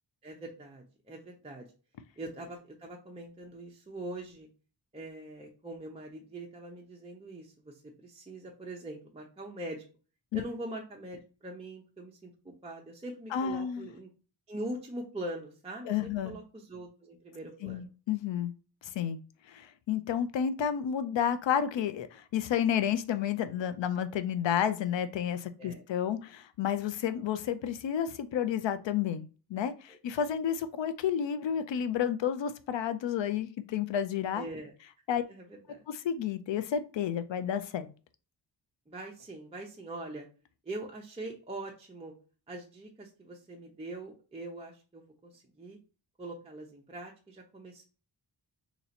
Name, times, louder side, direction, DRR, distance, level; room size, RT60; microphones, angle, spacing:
voice 1, 0.2-1.7 2.2-4.5 4.9-9.8 10.3-14.1 14.5-17.8 25.6-25.8 29.9-30.0 34.3-34.7 35.3-35.8 38.9-40.3 40.7-42.1 42.5-45.8 46.2-47.8, right 1 dB, 15° right, -1 dB, 0.6 m, -42 dB
voice 2, 13.3-13.9 15.9-16.4 17.6-18.5 18.9-19.2 19.5-29.2 29.5-34.5 35.1-35.2 35.9-37.9, left 9 dB, 85° left, 11 dB, 0.5 m, -31 dB
2.9 x 2.7 x 4.2 m, 0.35 s
wide cardioid pair, 150°, 43 cm